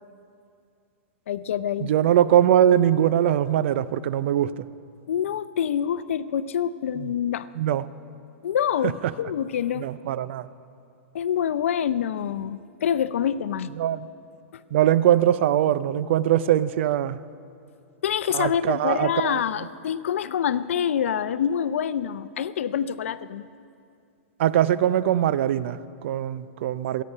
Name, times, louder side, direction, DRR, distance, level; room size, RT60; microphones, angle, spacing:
voice 1, 1.3-1.9 5.1-7.5 8.4-9.9 11.1-13.8 14.5-14.6 18.0-23.4, left 9 dB, 80° left, 16 dB, 0.5 m, -26 dB
voice 2, 1.8-4.7 7.0-7.1 7.6-7.8 9.8-10.5 13.8-14.1 14.7-17.2 18.3-19.4 24.4-27.0, right 11 dB, 65° right, 15 dB, 0.5 m, -22 dB
24.5 x 9.3 x 5.5 m, 2.5 s
hypercardioid pair, 125°, 7 cm